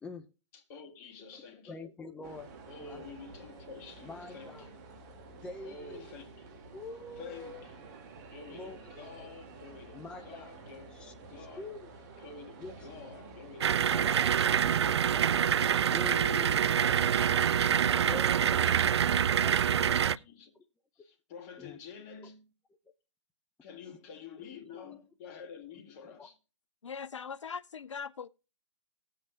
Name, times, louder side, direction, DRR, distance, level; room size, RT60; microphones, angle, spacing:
voice 1, 0.5-1.8 2.7-4.8 5.6-6.6 7.2-7.9 8.3-11.7 12.2-14.3 14.8-15.4 15.7-18.9 19.8-20.5 21.0-22.4 23.6-26.3, left 6 dB, 35° left, 2.2 m, -48 dB
voice 2, 1.3-2.5 2.8-3.1 4.0-4.7 5.4-6.1 6.7-8.0 8.5-9.3 9.9-10.5 10.9-11.9 12.6-12.9 13.8-14.9 15.7-16.2 16.7-16.8 17.1-17.6 18.0-18.6 19.3-20.0 21.6-21.8 23.8-24.0 24.4-24.5 24.7-25.0 26.0-26.3, left 3 dB, 5° left, 0.5 m, -46 dB
sound 1, 2.2-18.8, right 4 dB, 40° right, 2.2 m, -50 dB
sound 2, 13.6-20.2, right 8 dB, 65° right, 0.4 m, -26 dB
voice 3, 26.8-28.3, left 6 dB, 80° left, 0.4 m, -40 dB
19.0 x 7.7 x 2.3 m
figure-of-eight pair, 130°, 15 cm